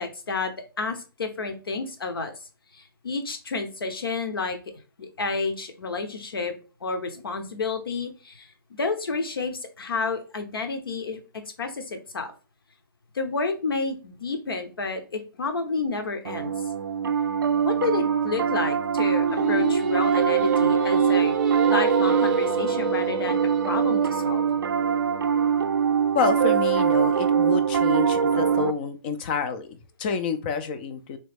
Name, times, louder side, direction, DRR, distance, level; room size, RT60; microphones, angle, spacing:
voice 1, 0.0-2.3 2.7-4.6 5.0-6.5 6.8-8.5 8.8-12.3 13.1-16.5 17.6-21.4 21.7-23.4 23.7-24.6, left 4 dB, 70° left, 6 dB, 0.9 m, -30 dB
Piano, 16.2-28.7, right 7 dB, 65° right, 0.4 m, -23 dB
Singing, 19.2-24.4, right 3 dB, 10° right, 0.7 m, -30 dB
voice 2, 26.1-31.2, left 6 dB, 25° left, 10 dB, 0.4 m, -28 dB
3.4 x 3.2 x 3.3 m, 0.34 s
hypercardioid pair, 145°, 12 cm